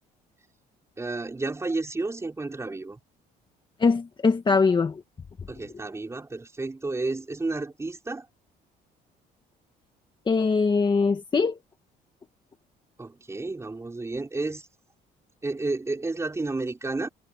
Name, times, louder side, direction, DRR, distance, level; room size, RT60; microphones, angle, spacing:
voice 1, 1.0-3.0 5.5-8.2 13.0-14.7 15.4-17.1, right 3 dB, 15° right, 5.0 m, -31 dB
voice 2, 3.8-5.0 10.3-11.6, left 4 dB, 25° left, 1.8 m, -22 dB
cardioid pair, 110°, 17 cm